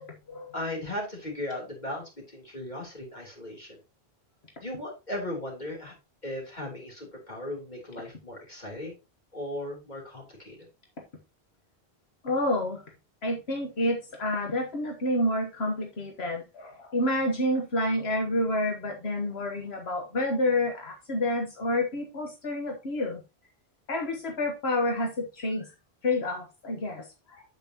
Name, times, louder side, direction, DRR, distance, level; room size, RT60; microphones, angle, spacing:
voice 1, 0.0-0.5 12.2-12.8 13.2-23.2 23.9-25.7 26.0-27.4, left 1 dB, 85° left, 2 dB, 1.6 m, -29 dB
voice 2, 0.5-3.8 4.6-5.9 6.2-9.0 9.3-10.7, left 1 dB, 45° left, -1 dB, 3.4 m, -37 dB
9.0 x 8.1 x 2.9 m, 0.26 s
omnidirectional pair, 1.0 m